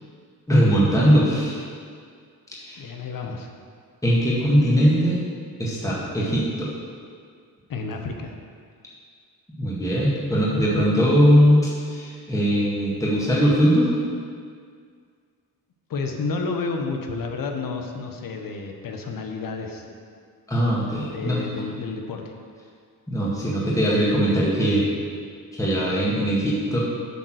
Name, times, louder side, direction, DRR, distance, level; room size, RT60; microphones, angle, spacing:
voice 1, 0.5-1.6 2.6-2.8 4.0-5.2 5.6-6.7 9.6-14.0 20.5-21.4 23.1-24.9 25.5-26.8, equal, 10° left, -6 dB, 1.8 m, -20 dB
voice 2, 2.8-3.5 7.7-8.3 15.9-20.0 21.1-22.3, left 4 dB, 65° left, 3 dB, 1.0 m, -30 dB
8.2 x 4.1 x 6.4 m, 2.1 s
cardioid pair, 85°, 37 cm